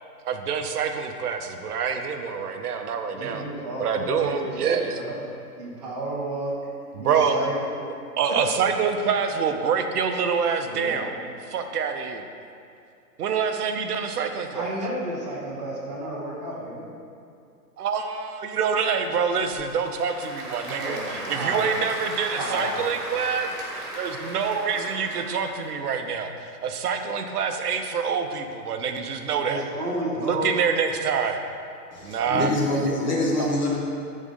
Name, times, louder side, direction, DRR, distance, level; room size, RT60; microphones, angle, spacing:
voice 1, 0.2-3.4 3.8-5.0 7.0-7.4 8.2-11.1 11.5-12.2 13.2-14.8 17.8-23.5 23.9-29.6 30.2-31.4 32.0-32.5 32.9-33.6, right 6 dB, 70° right, 6 dB, 0.7 m, -26 dB
voice 2, 3.1-5.3 5.6-6.5 7.0-7.9 10.7-11.0 14.5-16.9 20.6-21.8 22.1-23.4 29.4-30.5, right 1 dB, 25° right, -6 dB, 0.7 m, -32 dB
Applause / Crowd, 19.3-25.8, right 1 dB, 55° right, 1.4 m, -36 dB
voice 3, 31.9-33.8, left 2 dB, 30° left, -5 dB, 0.8 m, -25 dB
5.3 x 3.7 x 5.1 m, 2.4 s
hypercardioid pair, 175°, 48 cm